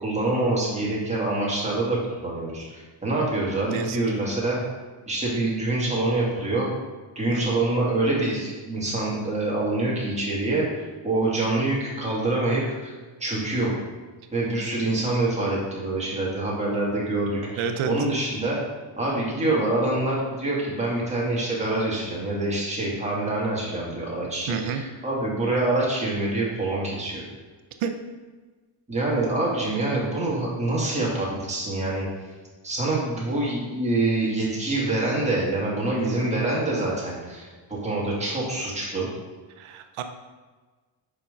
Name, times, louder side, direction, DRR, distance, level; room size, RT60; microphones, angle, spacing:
voice 1, 0.0-4.6 5.1-6.7 7.2-10.7 11.0-12.9 13.2-13.7 14.3-18.6 19.0-27.2 28.9-32.1 32.6-39.1, right 2 dB, 15° right, -5 dB, 2.2 m, -26 dB
voice 2, 3.7-4.0 7.3-7.6 17.6-17.9 24.5-24.8 27.8-27.9 39.6-40.0, right 7 dB, 80° right, 7 dB, 0.8 m, -29 dB
5.6 x 4.9 x 5.2 m, 1.4 s
cardioid pair, 130°, 48 cm